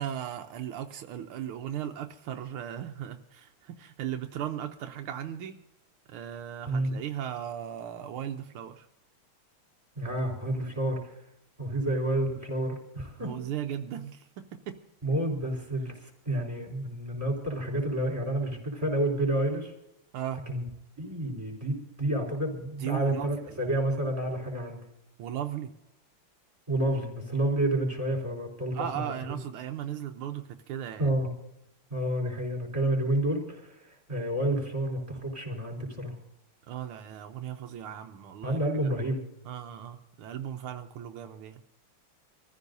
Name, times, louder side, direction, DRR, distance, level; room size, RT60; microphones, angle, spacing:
voice 1, 0.0-5.6 6.1-8.9 13.2-14.8 20.1-20.5 22.8-23.6 25.2-25.7 28.7-31.1 32.8-33.0 36.7-38.7 39.4-41.6, right 10 dB, 85° right, 6 dB, 1.6 m, -37 dB
voice 2, 6.7-7.0 9.9-11.2 11.6-13.3 15.0-19.7 20.5-20.6 21.0-24.8 26.7-29.1 31.0-31.3 31.9-36.1 38.4-39.2, right 1 dB, 15° right, 0 dB, 4.4 m, -29 dB
25.5 x 14.5 x 2.7 m, 0.88 s
omnidirectional pair, 2.4 m